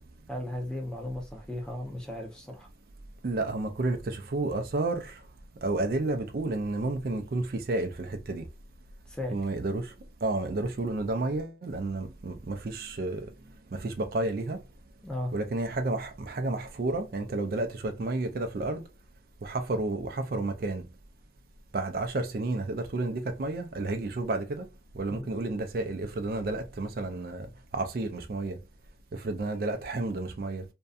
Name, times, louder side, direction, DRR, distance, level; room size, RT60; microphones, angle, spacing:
voice 1, 0.3-2.7 9.1-9.4 15.0-15.3 25.1-25.3, left 1 dB, 5° left, 0.5 m, -36 dB
voice 2, 3.2-5.1 5.6-8.4 9.3-9.9 10.2-13.3 13.7-14.6 15.3-18.8 19.4-20.8 21.7-24.7 25.0-27.5 27.7-28.6 29.2-30.6, right 2 dB, 50° right, 0.4 m, -31 dB
2.6 x 2.2 x 2.3 m
head